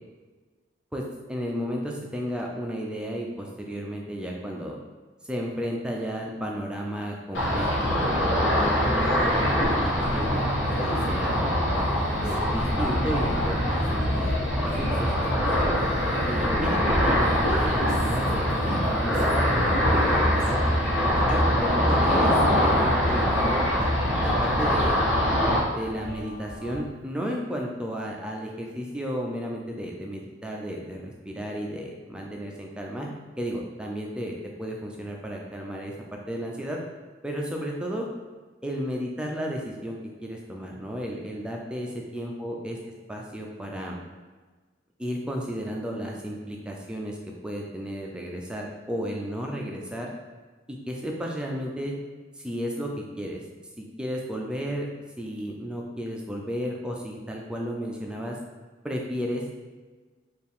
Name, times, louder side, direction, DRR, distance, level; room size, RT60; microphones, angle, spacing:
voice 1, 1.3-4.8 5.3-11.7 12.2-14.3 14.6-15.1 15.4-15.8 16.3-17.8 18.0-20.6 21.0-23.7 24.2-25.0 25.6-33.1 33.4-36.8 37.2-38.1 38.6-42.8 43.1-44.0 45.0-47.2 47.4-50.1 50.7-51.9 52.4-53.4 53.8-54.9 55.2-58.4 58.8-59.5, equal, 5° right, -1 dB, 0.3 m, -33 dB
Ocean, 7.3-25.6, equal, 90° left, 0.9 m, -23 dB
sound 1, 11.7-26.8, left 1 dB, 55° left, 0.9 m, -37 dB
4.4 x 2.4 x 3.5 m, 1.3 s
head